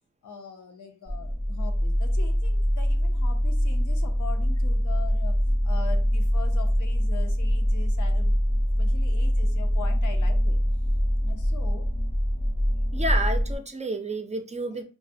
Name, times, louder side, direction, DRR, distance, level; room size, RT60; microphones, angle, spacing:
voice 1, 0.2-8.3 8.8-10.6 11.2-11.9 14.8-14.9, left 6 dB, 85° left, 5 dB, 0.5 m, -42 dB
sound 1, 1.1-13.6, equal, 15° left, 0.6 m, -24 dB
voice 2, 12.9-14.8, right 2 dB, 25° right, 6 dB, 0.4 m, -30 dB
2.3 x 2.0 x 2.5 m, 0.35 s
cardioid pair, 55°, 29 cm